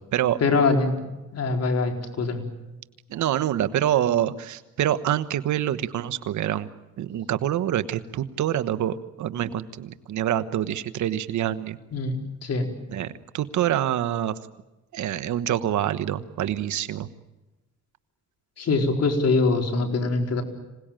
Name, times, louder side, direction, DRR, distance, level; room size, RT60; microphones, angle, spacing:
voice 1, 0.4-1.0 1.3-2.4 11.9-12.1 12.4-12.7 18.6-20.4, left 3 dB, 55° left, 4 dB, 4.5 m, -23 dB
voice 2, 3.1-6.7 7.0-11.8 12.9-14.4 14.9-17.1, right 11 dB, 75° right, 11 dB, 1.2 m, -26 dB
26.0 x 18.5 x 9.0 m, 1.1 s
cardioid pair, 90°, 30 cm